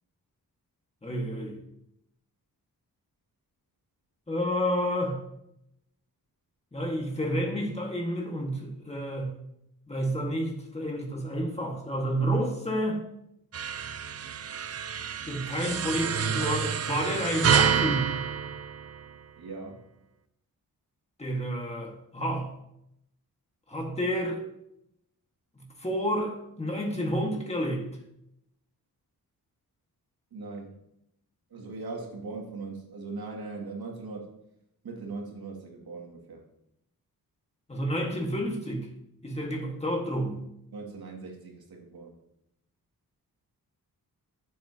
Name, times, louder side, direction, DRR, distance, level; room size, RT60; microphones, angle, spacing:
voice 1, 1.0-1.6 4.3-5.2 6.7-9.3 9.9-13.0 15.3-18.2 21.2-22.5 23.7-24.4 25.6-27.9 37.7-38.9 39.2-40.4, equal, 15° left, 0 dB, 1.7 m, -30 dB
sound 1, 13.5-19.3, right 7 dB, 45° right, 0.6 m, -28 dB
voice 2, 19.4-19.8 30.3-30.7 31.5-34.2 34.8-36.4 40.7-42.1, right 3 dB, 85° right, -1 dB, 2.4 m, -39 dB
15.0 x 7.4 x 2.9 m, 0.79 s
wide cardioid pair, 175°, 36 cm